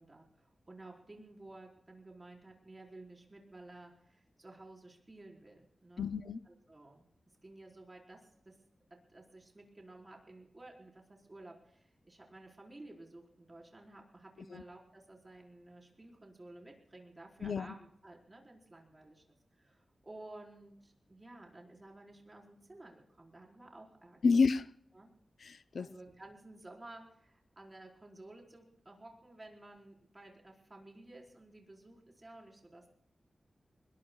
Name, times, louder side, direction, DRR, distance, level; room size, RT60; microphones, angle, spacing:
voice 1, 0.0-6.1 6.4-7.1 7.4-8.5 8.9-19.2 19.6-24.2 24.9-25.1 25.8-32.9, right 2 dB, 25° right, 4.5 m, -54 dB
voice 2, 6.0-6.4 14.5-14.6 17.4-17.7 24.2-24.7 25.4-25.9, left 4 dB, 75° left, 0.6 m, -30 dB
25.5 x 21.5 x 2.4 m
wide cardioid pair, 145°, 0 cm